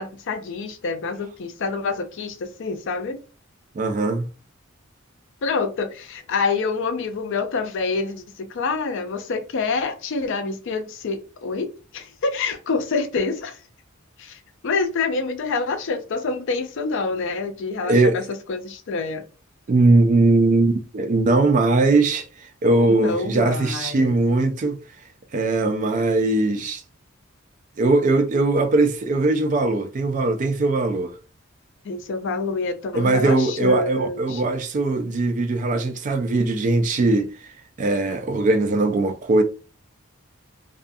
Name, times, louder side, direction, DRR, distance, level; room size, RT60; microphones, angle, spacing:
voice 1, 0.0-3.2 5.4-13.6 14.2-14.4 14.6-18.2 18.5-19.2 22.9-24.1 31.8-34.4, left 4 dB, 60° left, 0.4 m, -27 dB
voice 2, 3.8-4.3 17.8-18.2 19.7-22.3 22.6-24.8 25.3-26.8 27.8-31.2 32.9-37.3 37.8-39.4, right 2 dB, 35° right, 0.3 m, -20 dB
2.4 x 2.3 x 2.5 m
head